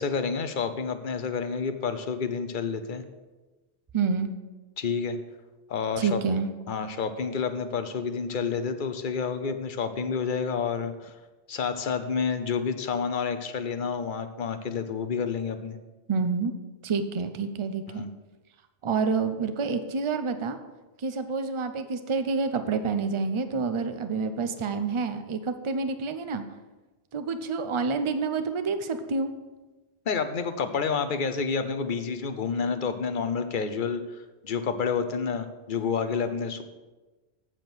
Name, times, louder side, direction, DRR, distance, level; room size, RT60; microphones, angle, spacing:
voice 1, 0.0-3.0 4.8-5.2 5.7-6.2 6.7-11.1 11.5-15.8 18.0-18.1 30.1-34.0 34.4-36.6, left 5 dB, 50° left, 9 dB, 0.8 m, -29 dB
voice 2, 3.9-4.3 6.0-6.5 16.1-16.5 16.8-18.1 18.8-20.6 21.0-26.4 27.1-29.3, right 4 dB, 35° right, 9 dB, 0.5 m, -28 dB
7.5 x 7.0 x 6.0 m, 1.2 s
omnidirectional pair, 1.2 m